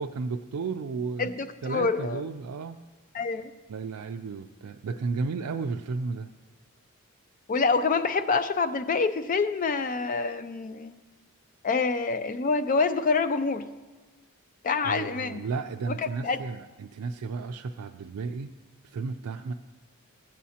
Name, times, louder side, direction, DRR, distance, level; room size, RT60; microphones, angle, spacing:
voice 1, 0.0-1.3 1.6-2.8 3.7-6.3 14.8-18.5 18.8-19.5, right 4 dB, 85° right, 4 dB, 0.4 m, -33 dB
voice 2, 1.2-2.2 3.1-3.5 7.5-11.0 11.6-13.7 14.6-15.4 15.9-16.4, left 4 dB, 35° left, 11 dB, 0.3 m, -26 dB
15.5 x 8.3 x 2.8 m, 1.2 s
head